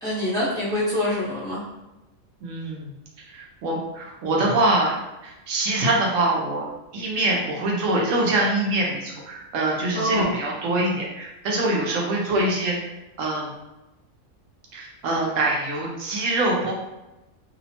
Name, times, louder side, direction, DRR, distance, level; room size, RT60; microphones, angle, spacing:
voice 1, 0.0-1.6 9.9-10.3 12.3-12.5, left 1 dB, 5° left, -9 dB, 0.7 m, -25 dB
voice 2, 2.4-2.9 3.3-4.9 5.2-12.9 13.2-13.5 14.7-16.7, right 2 dB, 75° right, -2 dB, 0.9 m, -24 dB
2.7 x 2.0 x 2.7 m, 0.99 s
omnidirectional pair, 1.4 m